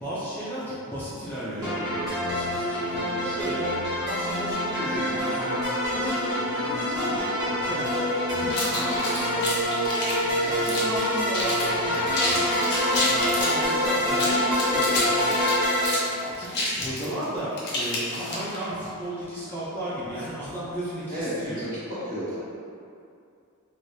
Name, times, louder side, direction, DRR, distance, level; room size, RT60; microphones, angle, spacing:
voice 1, 0.0-5.4 5.9-8.1 8.3-9.5 10.2-15.5 15.9-21.7, right 1 dB, 10° left, -11 dB, 0.5 m, -34 dB
sound 1, 1.6-15.9, left 1 dB, 15° right, 1.1 m, -26 dB
sound 2, 8.5-11.0 11.3-11.7 11.9-13.6 14.1-18.6, left 2 dB, 50° left, 0.7 m, -29 dB
voice 2, 21.1-22.6, equal, 40° right, -11 dB, 1.1 m, -34 dB
3.2 x 2.6 x 2.7 m, 2.5 s
head